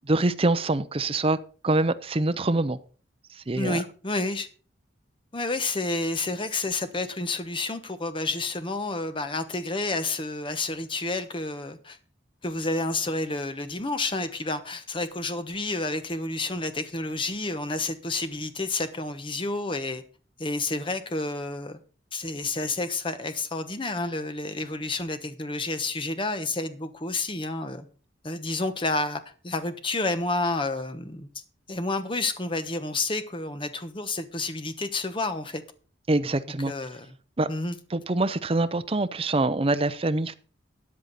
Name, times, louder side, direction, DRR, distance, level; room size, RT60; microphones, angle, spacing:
voice 1, 0.1-1.4 1.6-2.8 3.3-3.8 36.1-36.7 37.4-37.5 37.9-40.3, right 2 dB, 30° right, 0.7 m, -25 dB
voice 2, 3.5-4.5 5.3-12.0 12.4-20.0 20.4-21.8 22.1-27.9 28.2-31.3 31.7-35.6 36.7-37.1 37.5-37.7, left 2 dB, 25° left, 1.1 m, -30 dB
13.5 x 9.2 x 4.1 m
head